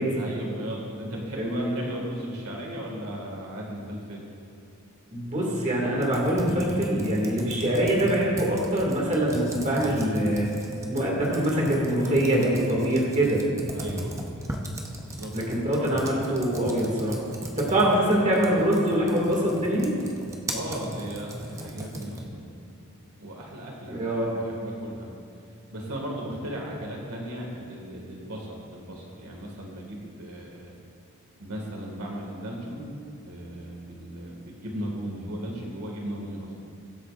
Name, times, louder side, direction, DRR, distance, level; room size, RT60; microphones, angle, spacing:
voice 1, 0.2-4.3 13.7-14.2 14.9-15.4 20.5-22.5 23.2-24.0 24.3-25.1 25.7-30.7 31.4-33.0 33.2-36.5, right 1 dB, 85° right, -1 dB, 2.0 m, -36 dB
voice 2, 1.3-1.7 5.1-10.5 10.9-13.4 15.3-17.2 17.6-19.9 23.9-24.3, right 1 dB, 30° right, -3 dB, 2.2 m, -24 dB
Computer keyboard, 5.9-22.4, right 1 dB, 15° right, 0.8 m, -37 dB
21.5 x 8.4 x 2.5 m, 2.5 s
head